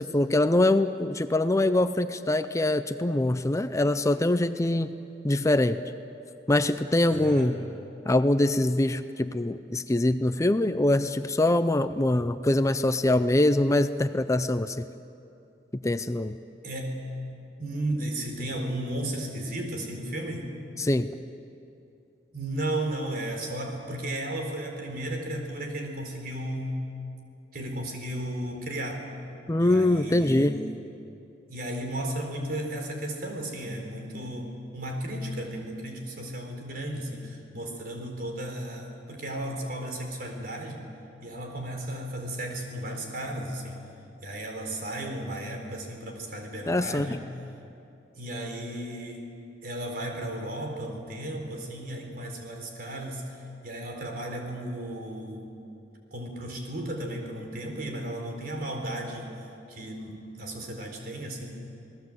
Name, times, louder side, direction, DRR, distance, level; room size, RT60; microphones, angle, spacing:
voice 1, 0.0-5.0 5.2-5.8 6.5-7.6 8.1-14.9 15.8-16.4 20.8-21.1 29.5-30.6 46.7-47.2, left 1 dB, 20° left, 11 dB, 0.5 m, -24 dB
voice 2, 7.1-7.6 16.6-17.3 17.6-20.6 22.3-26.9 27.5-29.0 29.6-30.8 31.5-40.9 41.2-43.8 44.2-47.2 48.1-49.3 49.6-55.5 56.1-59.4 59.7-61.6, right 1 dB, 60° right, 2 dB, 4.2 m, -34 dB
28.0 x 19.0 x 7.9 m, 2.7 s
head